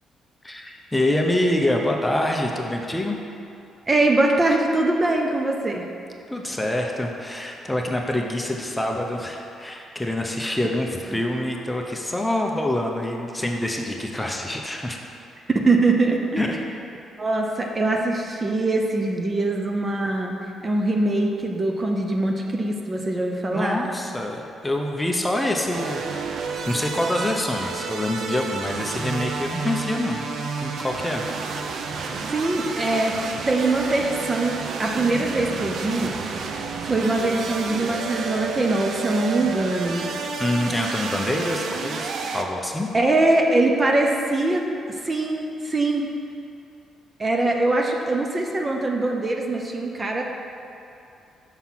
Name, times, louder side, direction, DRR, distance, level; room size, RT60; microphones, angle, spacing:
voice 1, 0.4-3.2 6.3-15.0 16.4-16.6 23.5-26.3 26.7-30.3 30.6-31.2 40.4-42.1 42.3-42.9, left 1 dB, 10° left, 1 dB, 0.7 m, -26 dB
voice 2, 3.9-5.9 15.5-16.5 17.2-20.3 20.6-23.8 32.3-33.2 33.5-36.4 36.8-40.1 42.9-44.6 44.9-46.1 47.2-50.2, right 2 dB, 30° right, 1 dB, 0.7 m, -22 dB
sound 1, 25.7-42.4, right 4 dB, 65° right, 0.5 m, -30 dB
5.8 x 5.8 x 5.8 m, 2.7 s
cardioid pair, 90°, 0 cm